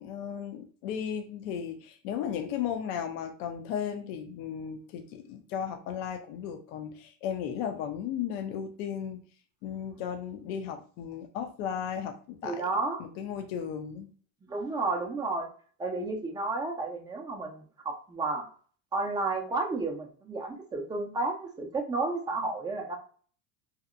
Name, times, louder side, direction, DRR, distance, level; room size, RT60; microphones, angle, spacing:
voice 1, 0.0-9.2 9.6-12.6 13.0-14.1, left 8 dB, 65° left, 5 dB, 0.5 m, -35 dB
voice 2, 12.4-13.0 14.4-15.5 15.8-18.5 18.9-23.0, right 3 dB, 10° right, 2 dB, 0.4 m, -32 dB
2.8 x 2.0 x 2.4 m, 0.43 s
hypercardioid pair, 95°, 50 cm